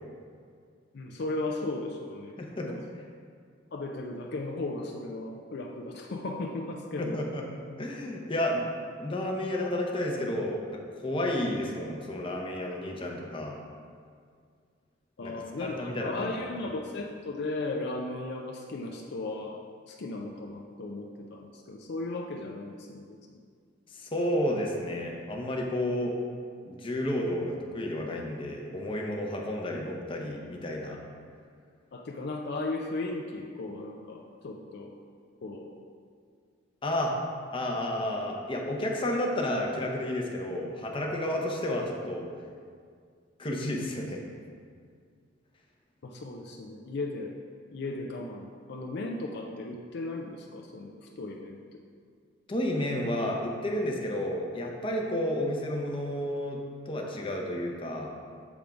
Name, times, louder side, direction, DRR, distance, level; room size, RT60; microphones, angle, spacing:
voice 1, 0.9-2.3 2.6-2.8 3.7-7.2 15.2-19.6 19.9-23.2 31.9-34.9 35.4-35.7 46.0-47.3 47.7-51.8, left 2 dB, 60° left, 1 dB, 0.4 m, -36 dB
voice 2, 2.4-2.7 7.0-7.4 7.8-8.7 9.0-13.6 15.2-15.3 15.6-16.3 24.0-26.2 26.7-31.0 36.8-37.1 37.5-42.3 43.4-44.2 52.5-56.6 56.9-58.1, left 1 dB, 25° left, 0 dB, 0.7 m, -31 dB
7.1 x 3.5 x 5.1 m, 2.1 s
head